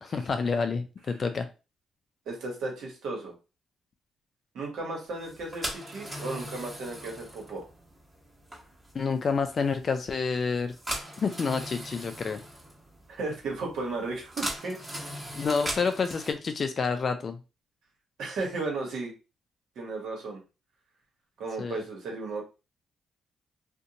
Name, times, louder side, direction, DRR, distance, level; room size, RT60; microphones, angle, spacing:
voice 1, 0.0-1.5 8.9-10.7 11.2-12.4 15.3-17.4 21.6-21.8, left 5 dB, 45° left, 7 dB, 0.4 m, -28 dB
voice 2, 2.3-3.3 4.5-7.6 13.1-14.8 15.6-15.8 18.2-19.1 19.8-20.4 21.4-22.4, right 3 dB, 75° right, 0 dB, 1.1 m, -35 dB
sound 1, 5.2-16.3, right 1 dB, 20° right, 1.0 m, -39 dB
2.5 x 2.1 x 2.8 m, 0.30 s
cardioid pair, 90°, 0 cm